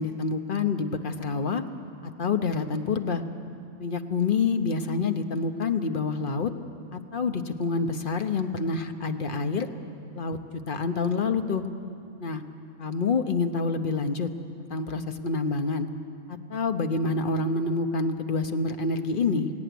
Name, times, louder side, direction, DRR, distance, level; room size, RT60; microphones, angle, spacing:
voice 1, 0.0-1.6 2.2-3.2 3.8-6.5 6.9-9.7 10.1-10.4 10.7-11.6 12.2-12.4 12.8-14.3 14.7-15.9 16.5-19.5, left 4 dB, 40° left, 7 dB, 1.0 m, -27 dB
18.0 x 17.5 x 9.3 m, 2.5 s
omnidirectional pair, 1.5 m